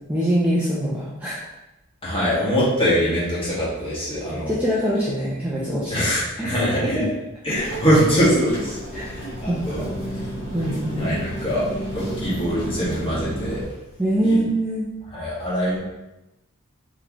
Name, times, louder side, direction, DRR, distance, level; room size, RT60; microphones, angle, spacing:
voice 1, 0.1-1.4 4.3-6.1 6.4-6.6 6.8-7.1 7.5-7.7 8.9-9.1 9.5-9.9 10.5-11.2 14.0-14.9 15.7-15.8, right 1 dB, 5° right, -8 dB, 0.5 m, -24 dB
voice 2, 2.0-4.6 5.9-7.0 7.4-9.8 11.0-11.7 11.9-13.6 14.2-14.4 15.1-15.8, equal, 25° left, -9 dB, 1.4 m, -23 dB
sound 1, 7.5-13.6, right 1 dB, 75° left, 1.3 m, -32 dB
3.6 x 3.1 x 3.0 m, 0.95 s
head